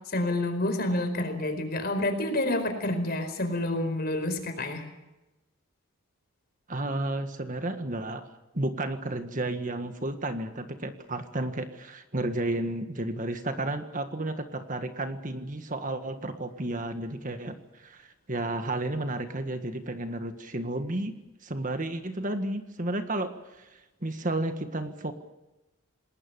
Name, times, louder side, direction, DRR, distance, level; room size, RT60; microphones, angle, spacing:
voice 1, 0.1-4.8, left 1 dB, 50° left, 8 dB, 4.7 m, -28 dB
voice 2, 6.7-8.3 8.5-21.1 21.4-23.7 24.0-25.1, right 2 dB, 40° right, 8 dB, 1.7 m, -32 dB
27.5 x 20.0 x 7.0 m, 0.99 s
head